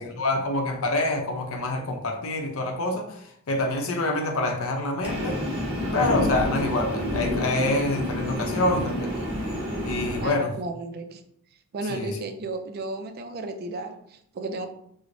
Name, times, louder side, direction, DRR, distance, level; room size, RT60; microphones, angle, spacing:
voice 1, 0.0-5.4 5.9-9.3 9.8-10.5 11.9-12.1, left 2 dB, 70° left, 3 dB, 0.6 m, -26 dB
Train, 5.0-10.3, left 1 dB, 25° right, 0.8 m, -29 dB
voice 2, 10.2-11.2 11.7-14.7, right 2 dB, 45° right, 7 dB, 0.3 m, -34 dB
4.6 x 2.0 x 2.5 m, 0.72 s
head